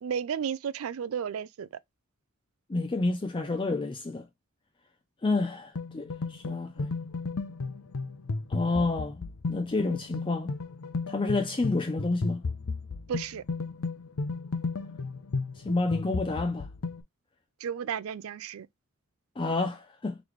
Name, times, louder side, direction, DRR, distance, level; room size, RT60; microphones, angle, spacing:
voice 1, 0.0-1.7 13.1-13.4 17.6-18.7, right 7 dB, 75° right, 0.4 m, -33 dB
voice 2, 2.7-4.3 5.2-6.9 8.5-10.5 11.1-12.5 15.5-16.7 19.4-20.2, left 3 dB, 25° left, 0.4 m, -29 dB
sound 1, 5.8-17.0, left 4 dB, 80° left, 0.6 m, -34 dB
3.9 x 3.4 x 3.1 m
head